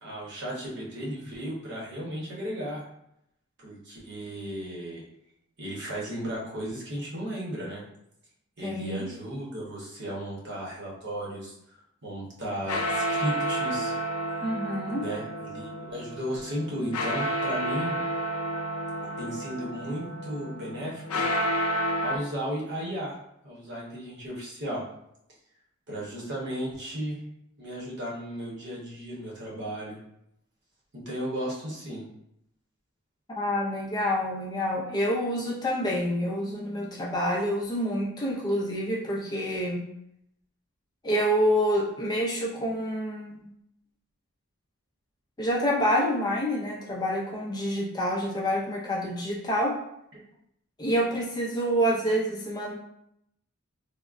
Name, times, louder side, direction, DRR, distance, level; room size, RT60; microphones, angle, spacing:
voice 1, 0.0-2.8 3.6-5.0 5.6-7.8 8.6-11.5 12.0-14.0 15.0-18.0 19.2-21.3 22.0-23.1 23.4-24.8 25.9-27.2 27.6-30.0 30.9-32.0, equal, 55° right, -4 dB, 0.9 m, -35 dB
voice 2, 8.6-9.1 14.4-15.0 33.4-39.8 41.0-43.5 45.4-49.7 50.8-52.7, equal, 20° left, -3 dB, 0.3 m, -27 dB
sound 1, 12.4-22.2, equal, 85° left, 0.4 m, -31 dB
3.5 x 2.0 x 2.4 m, 0.78 s
head